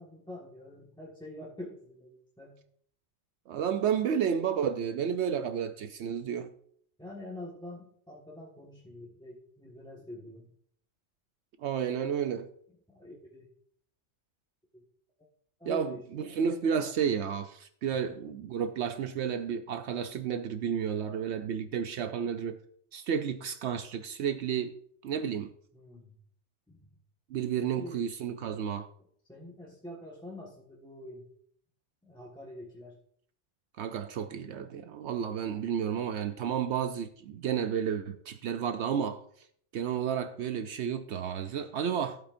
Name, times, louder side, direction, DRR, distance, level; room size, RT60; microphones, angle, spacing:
voice 1, 0.0-2.6 7.0-10.5 12.9-13.5 14.7-14.8 15.6-16.4 25.7-26.1 26.7-26.9 27.6-28.1 29.3-31.3 32.0-33.0 41.5-41.6, left 1 dB, 5° left, 1.4 m, -46 dB
voice 2, 3.5-6.5 11.6-12.5 15.7-22.6 22.9-24.7 25.0-25.5 27.3-28.9 33.8-39.5 39.7-42.2, right 8 dB, 75° right, 0.8 m, -31 dB
14.0 x 8.5 x 2.6 m
omnidirectional pair, 1.2 m